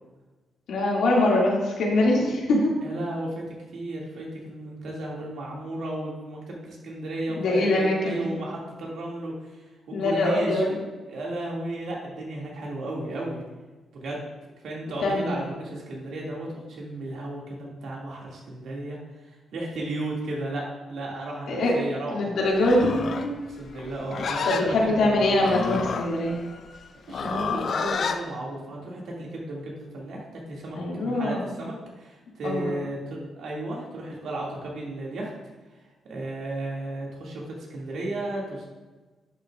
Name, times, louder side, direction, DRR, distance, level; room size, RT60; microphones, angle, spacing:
voice 1, 0.7-2.7 7.4-8.3 9.9-10.8 15.0-15.4 21.5-21.8 22.1-23.0 23.2-23.4 24.4-26.4 30.7-31.4 32.4-32.7, left 1 dB, 85° left, -3 dB, 2.2 m, -23 dB
voice 2, 2.8-3.4 3.7-9.6 9.9-10.8 11.1-13.4 13.9-14.2 14.6-19.0 19.5-22.3 23.5-25.4 27.1-35.3 36.0-38.6, right 1 dB, 70° right, -3 dB, 2.2 m, -34 dB
Livestock farm animals working animals, 22.5-28.2, left 5 dB, 45° left, 0.4 m, -30 dB
10.5 x 7.1 x 2.4 m, 1.3 s
wide cardioid pair, 160°, 0 cm